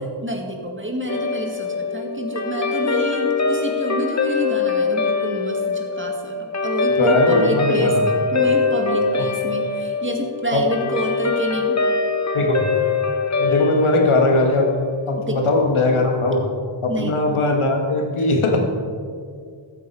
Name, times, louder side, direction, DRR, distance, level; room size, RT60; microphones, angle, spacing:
voice 1, 0.2-11.8 15.2-15.4 16.9-17.2 18.2-18.3, right 1 dB, 25° right, 2 dB, 2.0 m, -28 dB
Guitar, 1.1-15.7, left 4 dB, 35° left, 0.9 m, -23 dB
voice 2, 7.0-8.0 10.5-10.6 12.3-12.7 13.4-14.7 15.1-16.5 16.8-18.6, left 2 dB, 85° left, 2 dB, 1.9 m, -19 dB
14.0 x 8.9 x 4.8 m, 2.2 s
wide cardioid pair, 85°, 48 cm